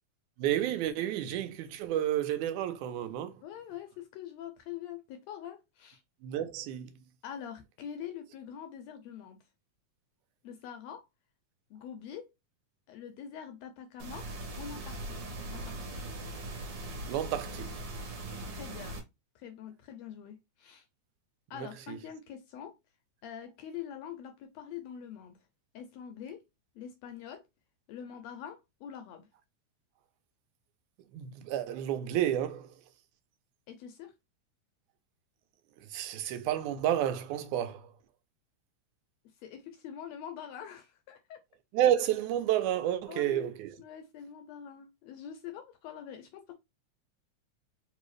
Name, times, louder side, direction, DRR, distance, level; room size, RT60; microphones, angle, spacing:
voice 1, 0.4-3.4 6.2-6.9 17.1-17.7 21.9-22.0 31.1-32.7 35.9-37.9 41.7-43.7, right 11 dB, 85° right, 2.0 m, -30 dB
voice 2, 3.4-6.0 7.2-9.4 10.4-11.1 11.7-12.3 12.9-14.3 14.6-15.2 15.5-16.0 18.5-19.0 19.3-20.9 21.5-22.8 23.2-25.4 25.7-26.4 26.7-27.4 27.9-29.3 33.7-34.1 39.2-41.4 43.1-43.5 43.8-46.5, left 9 dB, 80° left, 1.6 m, -44 dB
sound 1, 14.0-19.0, right 1 dB, 60° right, 1.9 m, -40 dB
4.7 x 2.6 x 3.1 m
omnidirectional pair, 3.4 m